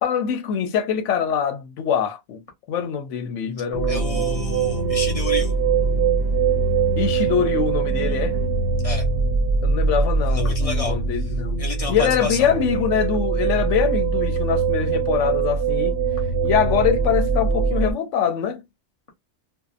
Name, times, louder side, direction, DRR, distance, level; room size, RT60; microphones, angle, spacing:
voice 1, 0.0-2.4 2.7-4.3 7.0-8.4 9.6-11.6 11.9-16.0 16.4-18.6, left 8 dB, 85° left, 1.0 m, -23 dB
sound 1, 3.7-17.9, right 5 dB, 65° right, 0.8 m, -22 dB
voice 2, 3.9-5.5 8.8-9.1 10.3-11.0 11.6-12.5, left 3 dB, 35° left, 0.7 m, -30 dB
2.7 x 2.2 x 2.3 m
omnidirectional pair, 1.2 m